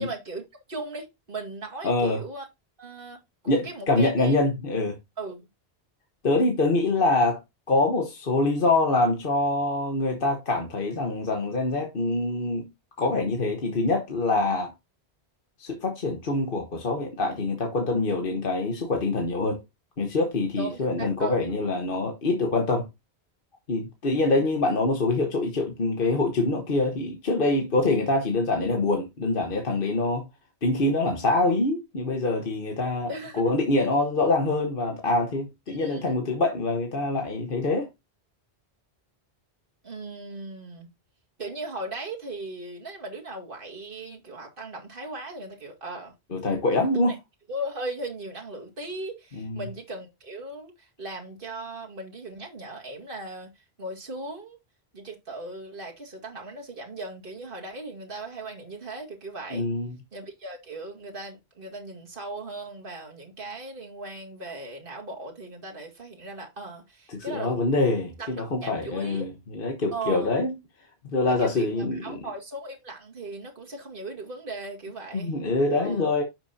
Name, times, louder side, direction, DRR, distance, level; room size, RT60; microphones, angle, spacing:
voice 1, 0.0-2.5 2.8-4.4 5.2-5.5 20.6-21.4 33.1-33.6 35.7-36.1 39.8-40.9 41.4-46.1 46.9-47.2 47.5-54.6 54.9-59.7 60.1-67.6 68.2-69.3 69.9-70.3 71.3-75.3 75.7-76.0, right 2 dB, 55° right, 2.2 m, -38 dB
voice 2, 1.8-2.2 3.5-5.0 6.2-7.4 7.7-12.7 13.0-14.7 15.6-19.6 20.0-22.9 23.7-30.2 30.6-37.9 46.3-47.1 49.4-49.6 59.5-59.9 67.1-70.5 71.0-72.2 75.1-76.2, left 2 dB, 55° left, 1.4 m, -25 dB
9.5 x 6.2 x 2.7 m
omnidirectional pair, 1.1 m